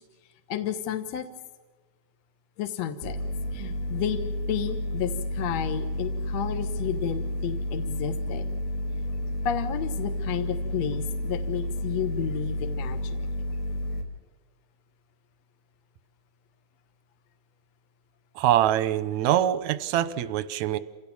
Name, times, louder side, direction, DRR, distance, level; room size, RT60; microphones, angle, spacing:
voice 1, 0.5-1.3 2.6-3.2 3.5-8.5 9.4-13.3, left 9 dB, 60° left, 9 dB, 1.9 m, -32 dB
sound 1, 3.0-14.0, left 1 dB, 85° left, 4.4 m, -31 dB
voice 2, 18.4-20.8, right 12 dB, 70° right, 14 dB, 1.8 m, -24 dB
28.5 x 17.0 x 7.2 m, 1.4 s
omnidirectional pair, 4.1 m